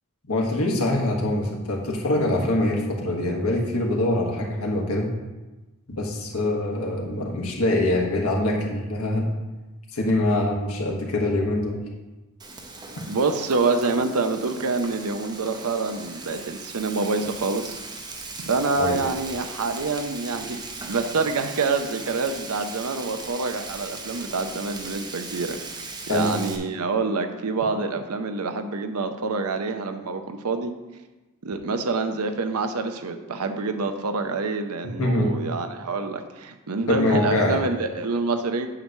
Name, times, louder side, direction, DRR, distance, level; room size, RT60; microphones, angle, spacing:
voice 1, 0.3-5.1 5.9-9.3 9.9-11.8 18.8-19.0 26.1-26.3 35.0-35.3 36.9-37.6, left 1 dB, 75° left, -1 dB, 1.4 m, -24 dB
Frying (food), 12.4-26.6, right 3 dB, 20° right, 0.7 m, -38 dB
voice 2, 13.1-17.8 18.4-25.6 26.1-30.7 31.4-38.7, right 3 dB, 75° right, 7 dB, 0.6 m, -26 dB
8.6 x 3.1 x 6.5 m, 1.1 s
head